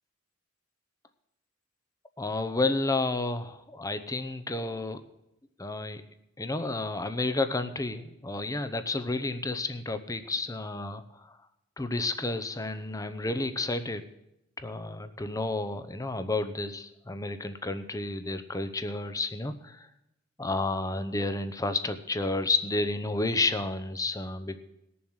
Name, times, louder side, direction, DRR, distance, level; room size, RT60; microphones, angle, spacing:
voice 1, 2.2-5.0 5.6-6.0 6.4-11.3 11.8-14.0 14.6-19.9 20.4-24.6, left 2 dB, 15° left, 10 dB, 0.8 m, -31 dB
19.0 x 7.1 x 6.4 m, 0.85 s
head